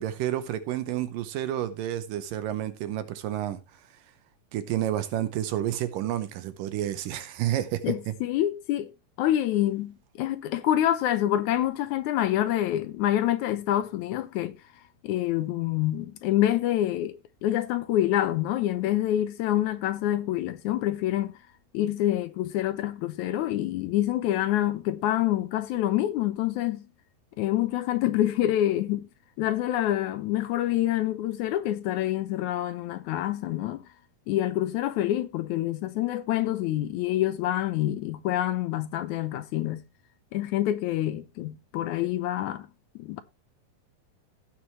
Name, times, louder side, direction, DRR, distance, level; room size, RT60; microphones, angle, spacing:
voice 1, 0.0-3.6 4.5-7.8 8.1-8.2, right 12 dB, 80° right, 2.5 m, -30 dB
voice 2, 7.8-8.9 9.2-14.6 15.0-21.3 21.7-26.8 27.4-29.1 29.4-33.8 34.3-39.8 40.3-42.7 43.0-43.2, left 13 dB, 75° left, 1.8 m, -27 dB
16.0 x 6.9 x 3.0 m
omnidirectional pair, 4.0 m